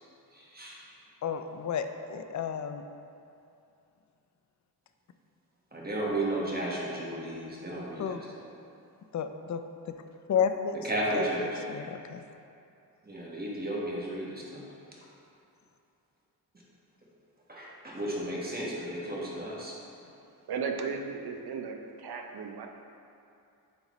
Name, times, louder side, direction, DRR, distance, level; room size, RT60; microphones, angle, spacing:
voice 1, 0.3-0.8 5.7-8.5 10.8-11.6 13.0-14.6 17.5-19.8, right 1 dB, 25° right, -5 dB, 1.4 m, -34 dB
voice 2, 1.2-2.8 8.0-8.2 9.1-9.6 10.3-10.8 11.1-11.3 11.7-12.2, left 7 dB, 50° left, 8 dB, 0.4 m, -31 dB
voice 3, 20.5-22.7, right 5 dB, 70° right, 4 dB, 0.6 m, -35 dB
8.7 x 3.9 x 3.1 m, 2.6 s
cardioid pair, 80°, 39 cm